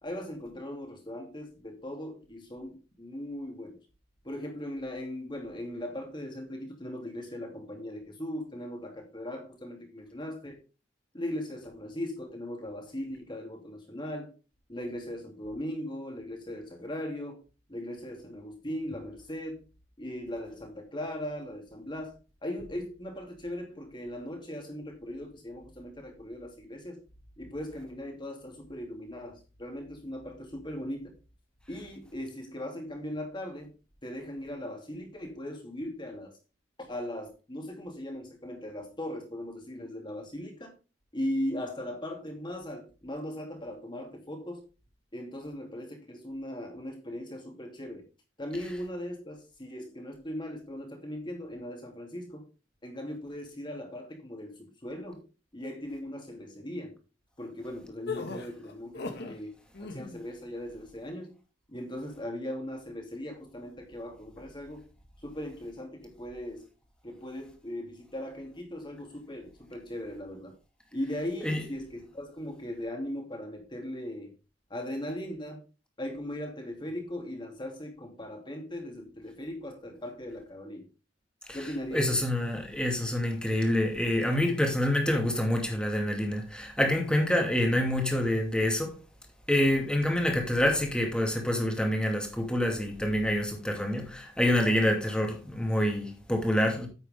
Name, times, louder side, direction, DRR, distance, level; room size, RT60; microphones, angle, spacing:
voice 1, 0.0-3.8 4.2-10.6 11.1-14.3 14.7-17.4 17.7-19.6 20.0-27.0 27.4-31.1 31.7-33.7 34.0-36.4 36.8-40.7 41.1-44.6 45.1-48.0 48.4-52.5 52.8-55.3 55.5-57.0 57.4-61.4 61.7-64.9 65.2-66.7 67.0-70.6 70.9-74.3 74.7-75.6 76.0-80.9 81.5-82.2, left 1 dB, 25° left, 2.6 m, -38 dB
sound 1, 58.1-59.4 59.7-60.2, left 3 dB, 65° left, 1.8 m, -37 dB
voice 2, 81.5-89.0 89.5-96.9, left 1 dB, 5° left, 2.4 m, -27 dB
9.4 x 8.0 x 3.6 m
head